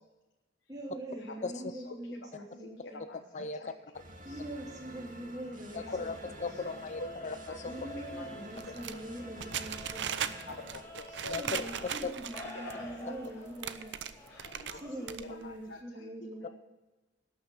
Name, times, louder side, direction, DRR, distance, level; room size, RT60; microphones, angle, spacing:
voice 1, 0.7-3.0 4.2-6.3 7.7-10.3 11.3-13.9 14.8-16.5, right 1 dB, 20° right, -2 dB, 3.0 m, -43 dB
voice 2, 1.4-1.7 3.0-3.1 3.3-3.7 5.7-7.8 11.3-11.6 12.0-12.1 16.4-16.5, left 4 dB, 40° left, 11 dB, 0.6 m, -37 dB
voice 3, 2.1-3.7 4.3-4.4 5.7-5.8 7.0-7.1 7.5-7.6 7.9-8.3 8.7-9.0 10.3-12.0 12.5-13.2 14.3-14.8 15.2-16.1 16.4-16.5, left 2 dB, 90° left, 2 dB, 1.1 m, -47 dB
sound 1, 3.9-10.8, equal, 50° right, 1.9 m, -49 dB
sound 2, 6.1-15.1, left 1 dB, 15° left, 2.4 m, -49 dB
sound 3, 8.6-12.7 13.2-13.3 13.5-14.8 15.1-15.5, right 8 dB, 75° right, 0.6 m, -38 dB
12.0 x 6.3 x 8.6 m, 1.1 s
head